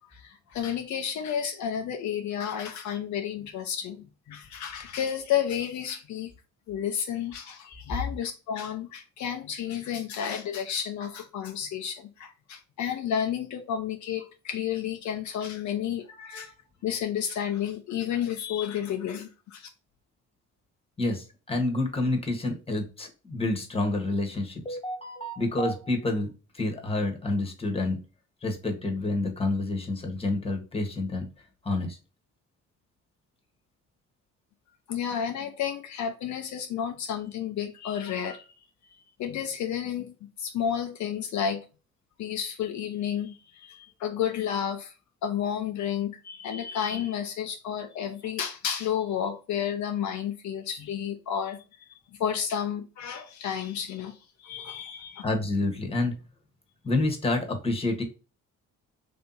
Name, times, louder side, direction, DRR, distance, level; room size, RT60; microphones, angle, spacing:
voice 1, 0.1-6.3 6.7-16.5 16.8-19.7 34.9-38.5 39.2-41.7 42.2-44.9 45.2-51.6 51.9-55.2, left 9 dB, 70° left, 0.6 m, -31 dB
voice 2, 16.2-16.5 21.0-28.0 28.4-31.2 31.6-32.0 55.2-56.1 56.8-58.0, left 2 dB, 20° left, 1.2 m, -28 dB
3.3 x 2.8 x 3.9 m
cardioid pair, 90°, 30 cm